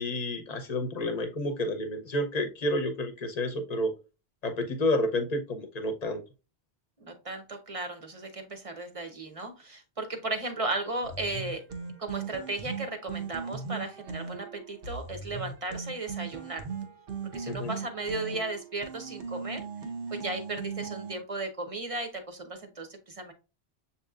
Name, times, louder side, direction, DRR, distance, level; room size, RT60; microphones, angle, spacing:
voice 1, 0.0-3.9 4.4-6.2 17.5-17.7, left 1 dB, 40° left, 8 dB, 0.8 m, -30 dB
voice 2, 7.0-11.6 12.0-16.7 17.3-19.6 20.1-23.3, right 2 dB, 35° right, 5 dB, 0.8 m, -35 dB
sound 1, 11.0-21.2, right 5 dB, 65° right, 1.0 m, -39 dB
7.2 x 2.9 x 2.4 m, 0.31 s
omnidirectional pair, 1.1 m